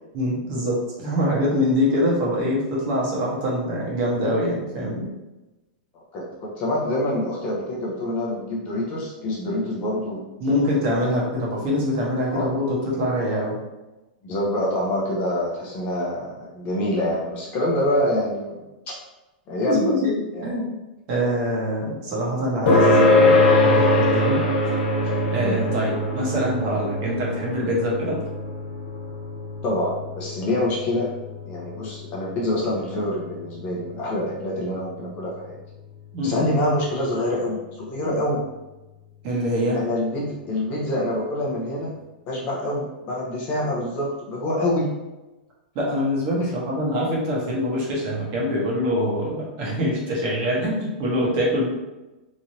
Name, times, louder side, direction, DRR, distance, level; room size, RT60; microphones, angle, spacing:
voice 1, 0.1-5.1 10.4-13.6 19.6-20.1 20.4-20.7 21.1-24.4 25.0-28.2 36.1-36.5 39.2-39.8 45.7-51.7, equal, 35° right, -4 dB, 0.9 m, -24 dB
voice 2, 6.1-10.7 12.3-12.5 14.2-18.6 19.5-19.9 20.3-20.6 25.4-25.6 29.6-31.1 31.4-35.6 36.2-38.4 39.7-42.0 42.3-44.9, left 1 dB, 25° left, -3 dB, 0.6 m, -26 dB
sound 1, 22.7-37.6, left 2 dB, 65° left, 1.1 m, -24 dB
3.0 x 2.6 x 2.7 m, 1.0 s
supercardioid pair, 165°, 5 cm